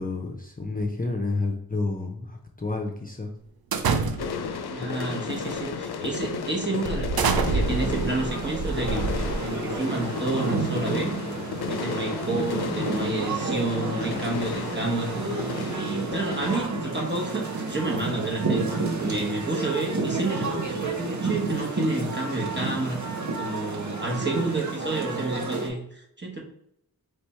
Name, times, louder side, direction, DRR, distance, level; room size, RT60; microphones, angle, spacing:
voice 1, 0.0-3.3 6.7-7.0, left 3 dB, 20° left, 1 dB, 0.6 m, -30 dB
sound 1, 3.7-4.5 5.3-5.6 6.1-6.2 6.9-9.8, right 4 dB, 70° right, 0.5 m, -27 dB
sound 2, 4.2-16.6, left 6 dB, 75° left, 0.5 m, -34 dB
voice 2, 4.7-9.0 9.4-11.2 11.7-15.2 15.7-26.4, right 2 dB, 30° right, -1 dB, 1.1 m, -30 dB
sound 3, 7.6-25.7, right 3 dB, 50° right, 0.9 m, -30 dB
3.4 x 3.3 x 4.3 m, 0.75 s
wide cardioid pair, 60°, 38 cm